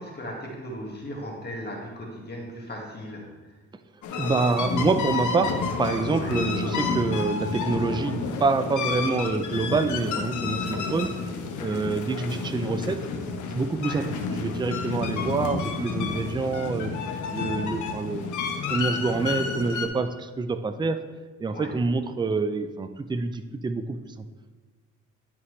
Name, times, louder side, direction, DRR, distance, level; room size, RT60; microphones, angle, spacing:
voice 1, 0.0-3.5 6.1-6.4 8.8-8.9 11.6-11.9 13.8-14.1 21.5-21.8, equal, 35° left, -1 dB, 1.8 m, -37 dB
sound 1, 4.0-19.9, left 5 dB, 75° left, 1.1 m, -30 dB
voice 2, 4.2-11.1 11.6-13.1 13.5-14.1 14.3-16.9 17.3-18.3 18.7-21.0 21.4-24.0, right 3 dB, 15° right, 9 dB, 0.5 m, -26 dB
11.0 x 5.7 x 3.2 m, 1.3 s
cardioid pair, 90°, 30 cm